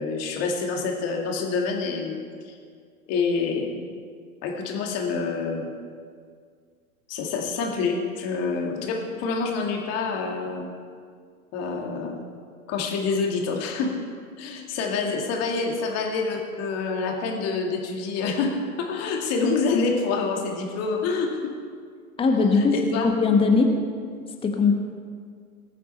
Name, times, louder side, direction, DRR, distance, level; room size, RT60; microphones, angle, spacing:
voice 1, 0.0-2.2 2.4-2.6 3.1-3.9 4.4-5.7 7.1-10.7 11.5-12.2 12.7-13.9 14.4-21.5 22.5-23.1, left 4 dB, 35° left, 1 dB, 2.3 m, -27 dB
voice 2, 22.2-23.8 24.4-24.7, left 4 dB, 10° left, 4 dB, 1.2 m, -20 dB
20.5 x 8.3 x 4.3 m, 2.1 s
figure-of-eight pair, 105°, 44 cm